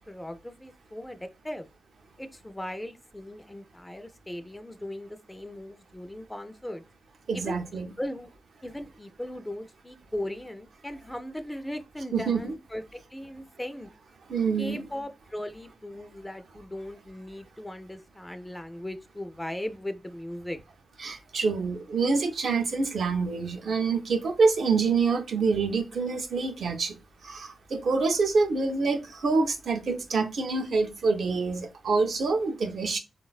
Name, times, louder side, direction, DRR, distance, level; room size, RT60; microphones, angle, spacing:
voice 1, 0.1-1.7 2.2-6.8 7.3-8.3 8.6-13.9 14.6-20.6, left 1 dB, 10° left, 0.3 m, -38 dB
voice 2, 7.3-7.9 12.1-12.5 14.3-14.8 21.0-26.9 27.2-33.0, right 4 dB, 75° right, 0.5 m, -26 dB
3.9 x 2.1 x 2.3 m
cardioid pair, 85°, 0 cm